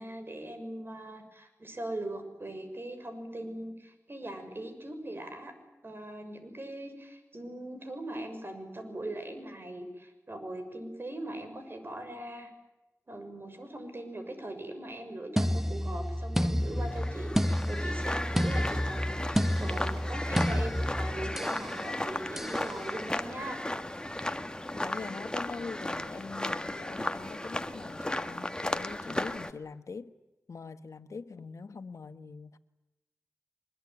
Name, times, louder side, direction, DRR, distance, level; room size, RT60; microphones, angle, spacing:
voice 1, 0.0-5.5 5.8-12.5 13.1-23.6, right 1 dB, 45° right, 7 dB, 6.8 m, -40 dB
sound 1, 15.4-21.6 22.4-22.6, equal, 5° right, 1.3 m, -30 dB
sound 2, 16.8-29.5, left 1 dB, 15° left, 1.7 m, -35 dB
voice 2, 24.7-30.1 30.5-32.6, left 4 dB, 80° left, 10 dB, 1.4 m, -43 dB
24.0 x 21.5 x 9.9 m, 1.0 s
cardioid pair, 50°, 5 cm